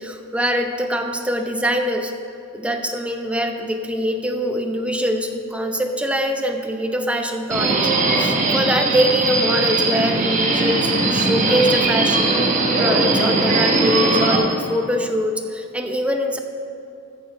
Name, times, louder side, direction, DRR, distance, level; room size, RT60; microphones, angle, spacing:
voice 1, 0.0-2.1 2.5-7.8 8.2-16.4, equal, 5° right, 4 dB, 0.7 m, -23 dB
Subway metro underground, 7.5-14.4, right 3 dB, 35° right, 1.3 m, -19 dB
13.5 x 6.8 x 5.3 m, 2.6 s
head